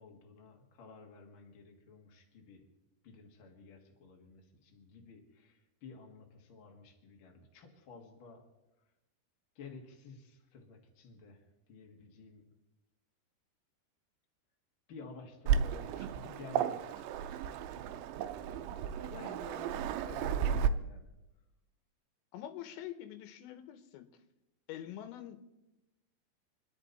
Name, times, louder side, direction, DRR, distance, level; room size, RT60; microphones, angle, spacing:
voice 1, 0.0-2.6 3.0-8.4 9.5-12.4 14.9-21.1, left 4 dB, 45° left, 1.8 m, -53 dB
Waves surf, 15.5-20.7, right 8 dB, 85° right, 2.9 m, -33 dB
voice 2, 22.3-24.1 24.7-25.5, left 11 dB, 85° left, 3.3 m, -45 dB
28.5 x 10.5 x 4.1 m
omnidirectional pair, 5.1 m